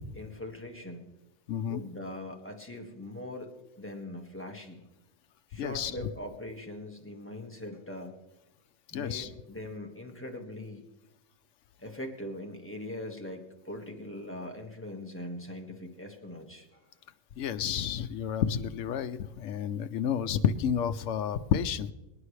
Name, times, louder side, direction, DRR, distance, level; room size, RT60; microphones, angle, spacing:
voice 1, 0.2-1.1 1.7-3.5 3.8-4.9 5.5-8.2 8.9-10.8 11.8-16.8, left 1 dB, 10° left, 2 dB, 1.7 m, -41 dB
voice 2, 1.5-1.8 5.5-5.9 8.9-9.3 17.4-21.9, left 8 dB, 80° left, 9 dB, 1.0 m, -30 dB
24.5 x 10.5 x 3.3 m, 0.99 s
omnidirectional pair, 1.3 m